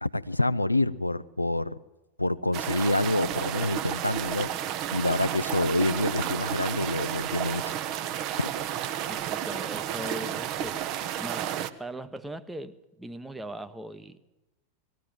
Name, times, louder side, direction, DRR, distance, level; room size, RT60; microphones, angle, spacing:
voice 1, 0.0-1.8 2.2-4.5 4.9-7.7 8.4-8.5, left 2 dB, 85° left, 0.6 m, -27 dB
sound 1, 2.5-11.7, right 11 dB, 40° right, 1.0 m, -32 dB
voice 2, 9.1-11.5 11.8-14.2, right 1 dB, 5° right, 1.0 m, -40 dB
20.0 x 15.0 x 8.9 m
figure-of-eight pair, 90°, 0 cm